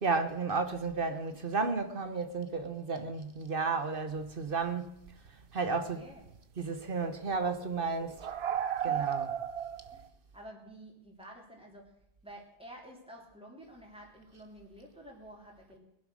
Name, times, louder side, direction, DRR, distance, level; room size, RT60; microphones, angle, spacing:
voice 1, 0.0-4.9 5.5-6.0 6.6-8.2 8.8-9.3, right 4 dB, 60° right, 1.3 m, -32 dB
sound 1, 4.6-4.7 5.1-5.3 6.2-6.4 6.8-10.1, right 9 dB, 85° right, 1.1 m, -35 dB
voice 2, 5.7-6.2 8.9-9.1 9.9-10.1 10.3-11.9 12.2-15.8, right 1 dB, 5° right, 3.3 m, -51 dB
21.5 x 7.9 x 6.4 m
omnidirectional pair, 1.0 m